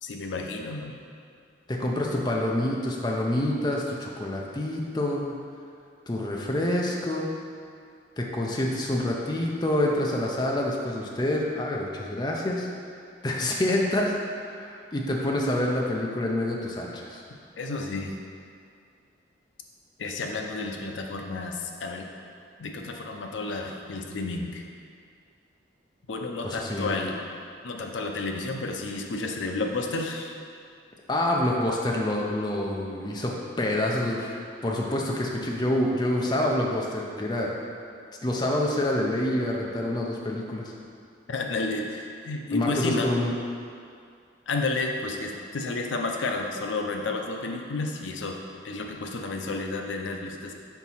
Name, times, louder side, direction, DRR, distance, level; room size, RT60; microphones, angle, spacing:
voice 1, 0.0-1.0 17.6-18.2 20.0-22.0 22.6-24.7 26.1-27.2 27.6-30.3 41.3-43.1 44.5-48.4 48.6-50.5, left 3 dB, 80° left, 2 dB, 0.5 m, -31 dB
voice 2, 1.7-5.3 6.1-7.3 8.2-12.7 13.2-14.1 14.5-17.2 26.4-27.0 31.1-33.3 33.6-37.6 38.2-40.7 42.5-43.3, left 1 dB, 20° left, -1 dB, 0.5 m, -27 dB
4.6 x 4.0 x 5.5 m, 2.3 s
head